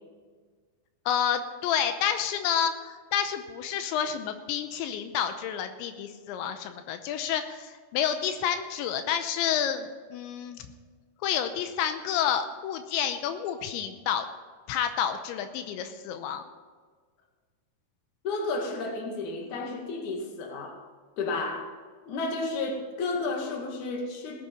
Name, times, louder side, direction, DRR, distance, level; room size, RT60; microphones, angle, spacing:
voice 1, 1.1-10.6 11.2-14.3 14.7-16.4, left 9 dB, 85° left, 8 dB, 3.1 m, -29 dB
voice 2, 18.2-20.8 21.2-21.7 22.1-24.4, left 3 dB, 50° left, 1 dB, 3.0 m, -32 dB
18.5 x 8.5 x 5.3 m, 1.5 s
omnidirectional pair, 5.2 m